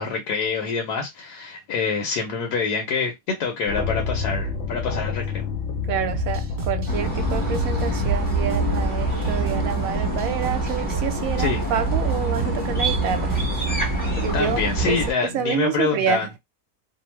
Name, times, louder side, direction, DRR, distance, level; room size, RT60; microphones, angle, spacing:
voice 1, 0.0-5.4 11.4-11.6 14.3-16.3, left 5 dB, 80° left, 1.3 m, -26 dB
sound 1, 3.7-9.7, left 5 dB, 65° left, 0.8 m, -28 dB
voice 2, 5.9-13.4 14.2-16.4, right 8 dB, 70° right, 0.9 m, -28 dB
sound 2, 6.1-13.7, right 3 dB, 40° right, 1.0 m, -32 dB
sound 3, 6.9-15.1, right 2 dB, 10° left, 0.7 m, -25 dB
2.9 x 2.0 x 3.1 m
omnidirectional pair, 1.7 m